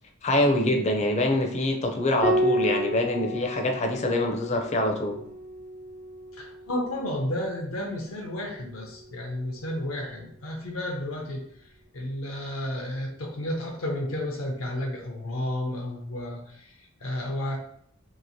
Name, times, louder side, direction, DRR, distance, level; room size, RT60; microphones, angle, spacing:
voice 1, 0.2-5.2, left 1 dB, 35° left, 3 dB, 0.4 m, -25 dB
Piano, 2.2-7.1 8.7-9.5, equal, 55° right, 0.8 m, -31 dB
voice 2, 6.4-11.5 11.9-17.6, left 1 dB, 80° left, 1 dB, 0.6 m, -32 dB
2.9 x 2.8 x 2.7 m, 0.66 s
head